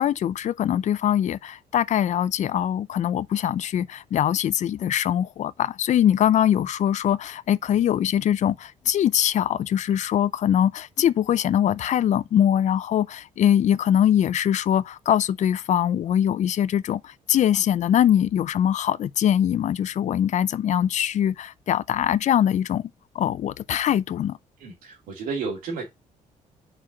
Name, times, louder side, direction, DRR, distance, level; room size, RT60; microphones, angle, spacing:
voice 1, 0.0-22.9 23.1-24.4, left 10 dB, 55° left, 0.5 m, -22 dB
voice 2, 24.6-25.8, right 4 dB, 85° right, 2.5 m, -32 dB
5.8 x 4.8 x 6.1 m
cardioid pair, 100°, 14 cm